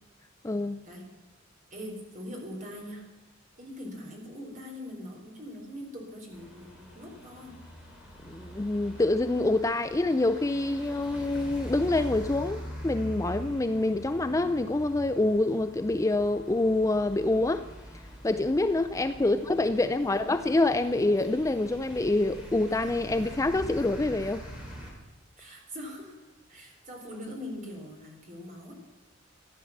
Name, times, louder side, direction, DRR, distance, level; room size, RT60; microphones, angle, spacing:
voice 1, 0.4-0.8 8.2-17.7 18.2-24.4, left 2 dB, 15° left, 10 dB, 0.4 m, -26 dB
voice 2, 1.7-3.1 3.6-7.6 19.2-19.4 20.0-20.3 25.4-28.7, equal, 40° right, 0 dB, 4.0 m, -42 dB
sound 1, 6.3-24.9, equal, 5° right, 3.9 m, -43 dB
14.5 x 10.5 x 7.2 m, 1.2 s
head